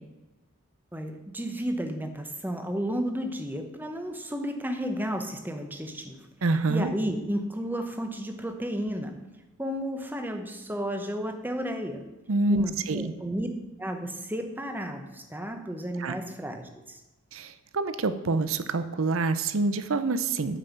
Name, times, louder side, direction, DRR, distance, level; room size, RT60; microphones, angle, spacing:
voice 1, 0.9-6.2 6.7-9.1 9.6-12.0 12.5-13.5 13.8-17.0, equal, 10° right, 6 dB, 0.8 m, -32 dB
voice 2, 6.4-6.9 12.3-13.1 16.0-16.2 17.3-20.6, right 3 dB, 70° right, 11 dB, 0.6 m, -27 dB
9.0 x 5.5 x 7.1 m, 1.0 s
head